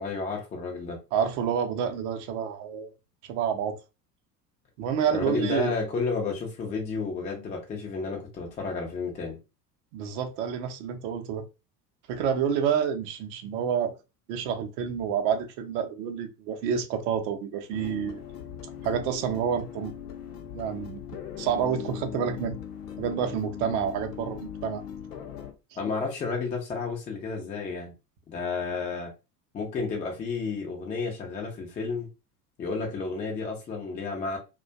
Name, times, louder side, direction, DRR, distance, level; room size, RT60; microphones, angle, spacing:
voice 1, 0.0-1.0 5.1-9.4 25.8-27.9 28.3-29.1 29.5-32.1 32.6-34.4, left 4 dB, 15° left, 0.4 m, -31 dB
voice 2, 1.1-2.9 3.3-3.8 4.8-5.7 9.9-11.4 12.1-13.9 14.3-18.2 18.8-19.9 20.5-21.0 21.4-22.5 23.0-24.8, right 7 dB, 50° right, 0.6 m, -28 dB
sound 1, 17.7-25.5, left 8 dB, 70° left, 0.7 m, -40 dB
2.4 x 2.2 x 2.3 m
figure-of-eight pair, 75°, 49 cm